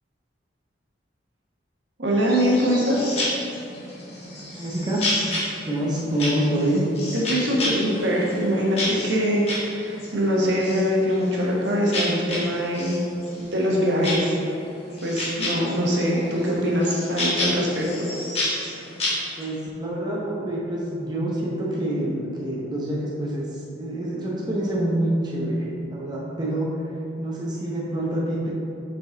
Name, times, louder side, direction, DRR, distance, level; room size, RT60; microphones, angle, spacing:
voice 1, 2.0-3.0 7.3-13.0 13.5-14.3 15.0-18.1, equal, 75° right, -4 dB, 1.2 m, -23 dB
sound 1, 2.2-19.4, left 1 dB, 35° left, 1.4 m, -31 dB
voice 2, 4.6-5.0 5.6-6.8 19.4-28.5, right 1 dB, 25° right, -5 dB, 0.7 m, -27 dB
5.1 x 4.9 x 3.9 m, 2.7 s
head